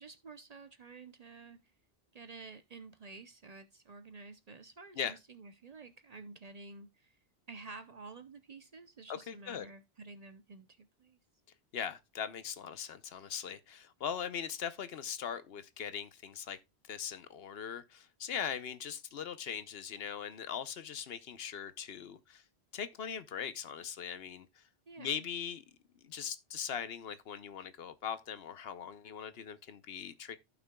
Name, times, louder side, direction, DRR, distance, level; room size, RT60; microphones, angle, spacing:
voice 1, 0.0-1.6 2.1-7.2 7.5-11.2 24.9-25.3, right 4 dB, 45° right, 0.6 m, -51 dB
voice 2, 9.1-9.7 11.7-16.6 16.9-22.4 22.7-24.6 25.0-25.6 26.0-30.4, left 8 dB, 70° left, 0.9 m, -40 dB
15.0 x 5.9 x 2.2 m
omnidirectional pair, 1.1 m